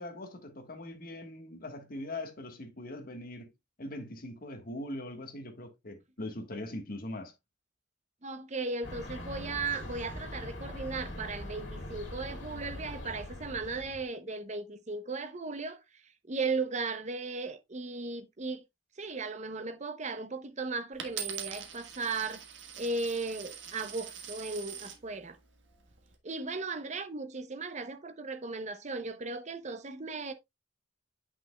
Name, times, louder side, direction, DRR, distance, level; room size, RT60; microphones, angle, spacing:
voice 1, 0.0-3.5 3.8-7.3, left 1 dB, 50° left, 1.5 m, -41 dB
voice 2, 8.2-15.8 16.3-18.6 19.0-22.4 22.8-25.4 26.2-30.3, right 3 dB, 40° right, 0.8 m, -36 dB
sound 1, 8.8-14.0, left 1 dB, 75° left, 2.5 m, -42 dB
Coin (dropping), 21.0-25.0 25.7-26.1, right 8 dB, 75° right, 1.5 m, -42 dB
8.7 x 6.0 x 2.3 m
head